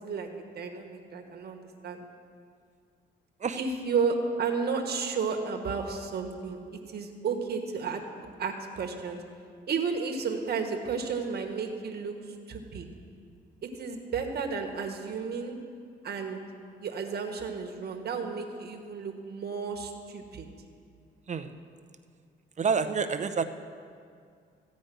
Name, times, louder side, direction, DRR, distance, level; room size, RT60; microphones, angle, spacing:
voice 1, 0.0-2.0 3.5-6.6 6.9-8.0 8.4-9.2 9.7-12.9 13.6-15.6 16.0-16.4 16.8-20.5, right 5 dB, 55° right, 3 dB, 1.4 m, -32 dB
voice 2, 22.6-23.4, right 5 dB, 35° right, 9 dB, 0.7 m, -28 dB
14.5 x 5.2 x 9.1 m, 2.2 s
cardioid pair, 90°, 20 cm